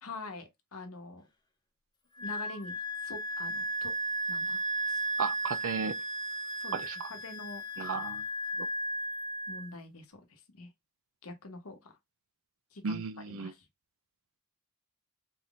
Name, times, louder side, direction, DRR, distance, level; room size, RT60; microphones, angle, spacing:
voice 1, 0.0-1.3 2.2-3.9 4.3-5.1 6.6-7.6 9.5-10.7 11.2-12.0 12.7-13.7, left 2 dB, 70° left, 1.1 m, -46 dB
Wind instrument woodwind instrument, 2.2-9.6, right 1 dB, 20° left, 0.6 m, -35 dB
voice 2, 5.2-6.0 6.7-7.1 7.8-8.2 8.6-8.7 12.8-13.5, right 5 dB, 65° right, 0.5 m, -34 dB
4.1 x 3.6 x 2.4 m
head